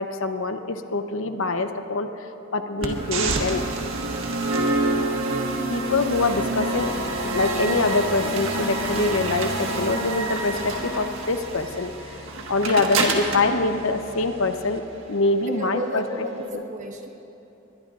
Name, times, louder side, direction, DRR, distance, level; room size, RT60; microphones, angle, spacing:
voice 1, 0.0-3.6 5.7-14.8 15.1-16.3 16.5-16.6, left 3 dB, 60° left, 8 dB, 0.8 m, -25 dB
sound 1, 2.8-14.8, right 2 dB, 65° right, 1.5 m, -27 dB
voice 2, 15.5-17.1, equal, 35° right, 1 dB, 1.3 m, -33 dB
22.0 x 22.0 x 2.5 m, 2.9 s
head